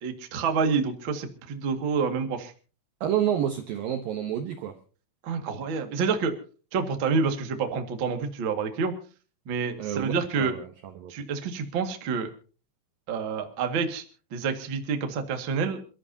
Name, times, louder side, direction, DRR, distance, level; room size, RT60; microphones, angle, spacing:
voice 1, 0.0-2.5 5.2-6.3 6.7-8.9 9.4-10.5 11.1-12.3 13.1-14.0 14.3-15.8, right 5 dB, 50° right, 5 dB, 1.4 m, -28 dB
voice 2, 3.0-4.8 9.8-11.1, right 10 dB, 75° right, 7 dB, 2.1 m, -29 dB
28.0 x 13.5 x 2.8 m, 0.37 s
omnidirectional pair, 5.5 m